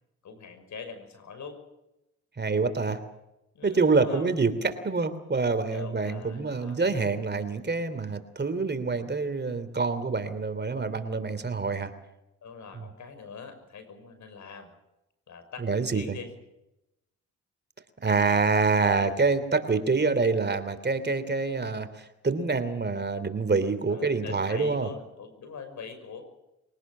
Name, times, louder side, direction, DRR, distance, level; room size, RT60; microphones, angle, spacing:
voice 1, 0.2-1.6 3.5-4.3 5.7-6.8 12.4-14.7 15.3-16.3 18.8-19.1 23.9-26.2, left 5 dB, 65° left, 9 dB, 6.0 m, -43 dB
voice 2, 2.4-3.0 3.6-11.9 12.8-12.9 15.6-16.2 18.0-24.9, right 4 dB, 35° right, 11 dB, 3.1 m, -26 dB
24.0 x 18.5 x 7.5 m, 0.90 s
supercardioid pair, 60°, 31 cm